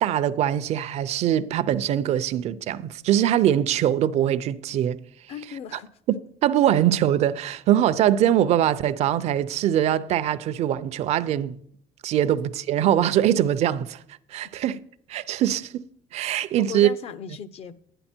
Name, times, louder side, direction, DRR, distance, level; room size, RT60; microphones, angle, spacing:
voice 1, 0.0-5.0 6.1-11.6 12.0-14.0 14.3-14.8 15.1-16.9, right 11 dB, 55° right, 0.6 m, -22 dB
voice 2, 5.3-5.9 16.6-17.8, left 7 dB, 50° left, 0.7 m, -37 dB
11.0 x 10.0 x 4.4 m
cardioid pair, 120°, 13 cm